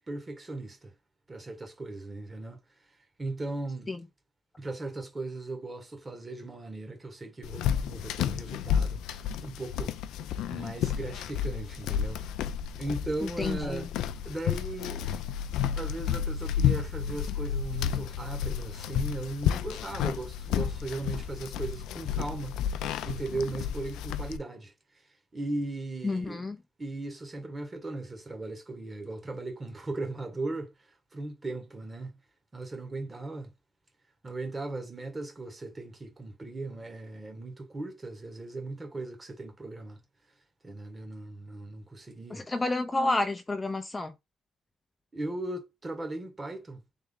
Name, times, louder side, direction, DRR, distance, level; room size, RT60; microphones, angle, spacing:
voice 1, 0.1-0.9 1.3-2.6 3.2-3.9 4.6-10.0 10.5-12.2 12.8-13.9 14.2-15.0 15.7-22.8 23.0-24.7 25.3-26.4 26.8-32.2 32.5-33.5 34.2-40.0 40.6-42.4 45.1-46.8, right 2 dB, 20° right, 1.4 m, -37 dB
sound 1, 7.4-24.4, left 9 dB, 85° left, 0.4 m, -31 dB
voice 2, 13.4-13.9 26.0-26.6 42.3-44.1, left 2 dB, 20° left, 0.5 m, -30 dB
3.5 x 3.2 x 3.7 m
cardioid pair, 100°, 0 cm